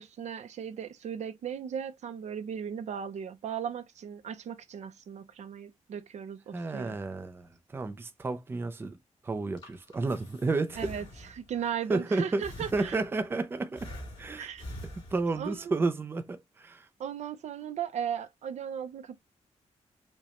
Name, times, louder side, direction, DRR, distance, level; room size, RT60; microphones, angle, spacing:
voice 1, 0.0-7.0 10.8-13.0 14.4-14.7 15.4-15.8 17.0-19.2, right 8 dB, 75° right, 0.5 m, -37 dB
voice 2, 6.5-9.0 9.2-10.9 11.9-12.4 12.7-13.9 14.2-14.5 15.1-16.9, right 3 dB, 20° right, 0.4 m, -31 dB
Breathing, 9.3-11.6 12.4-13.3 13.8-15.6, equal, 40° left, 2.5 m, -45 dB
4.9 x 2.2 x 2.9 m
wide cardioid pair, 180°, 12 cm